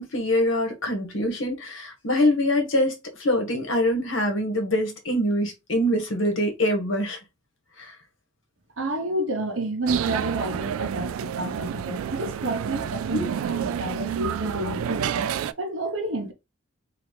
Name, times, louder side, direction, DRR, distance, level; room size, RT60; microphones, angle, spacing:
voice 1, 0.0-7.2 7.8-7.9 13.1-13.2, left 1 dB, 65° left, 1.3 m, -24 dB
voice 2, 8.8-15.3 15.6-16.3, right 2 dB, 70° right, 1.0 m, -30 dB
sound 1, 9.9-15.5, right 8 dB, 85° right, 0.3 m, -29 dB
4.0 x 2.8 x 3.2 m
head